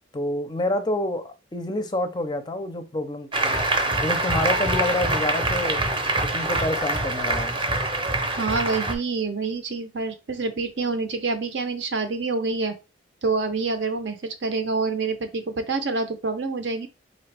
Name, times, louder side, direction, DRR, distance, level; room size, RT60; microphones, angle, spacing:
voice 1, 0.1-3.6 4.0-5.8 6.2-7.6, left 1 dB, 20° left, 0.5 m, -28 dB
Applause, 3.3-8.9, right 2 dB, 25° right, 0.7 m, -24 dB
voice 2, 8.4-12.7 13.2-16.9, right 4 dB, 65° right, 0.7 m, -27 dB
4.0 x 3.4 x 3.3 m
head